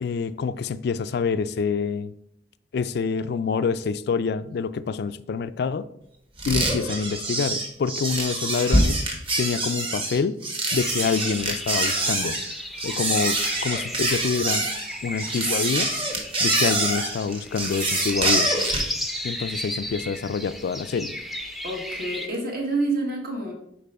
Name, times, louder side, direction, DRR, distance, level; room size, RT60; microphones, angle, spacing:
voice 1, 0.0-2.1 2.7-5.9 6.5-9.0 9.4-10.4 10.7-12.4 12.8-13.4 13.6-14.7 15.0-15.9 16.4-18.5 19.2-21.1, left 5 dB, 60° left, 0.3 m, -26 dB
sound 1, 6.4-18.9, right 2 dB, 30° right, 1.3 m, -25 dB
sound 2, 10.8-22.3, left 1 dB, ahead, 0.5 m, -34 dB
voice 2, 21.6-23.5, right 2 dB, 50° right, 1.6 m, -28 dB
5.2 x 4.3 x 5.4 m
head